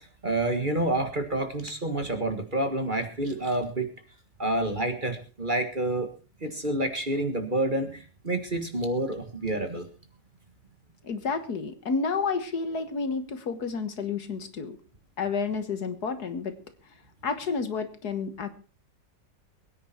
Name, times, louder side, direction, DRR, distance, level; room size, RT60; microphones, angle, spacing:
voice 1, 0.0-3.9 4.4-6.1 6.4-9.9, right 1 dB, 30° right, 7 dB, 1.7 m, -28 dB
voice 2, 11.0-14.8 15.2-16.6 17.2-18.5, left 5 dB, 60° left, 10 dB, 1.9 m, -30 dB
22.5 x 9.8 x 4.3 m, 0.36 s
omnidirectional pair, 2.0 m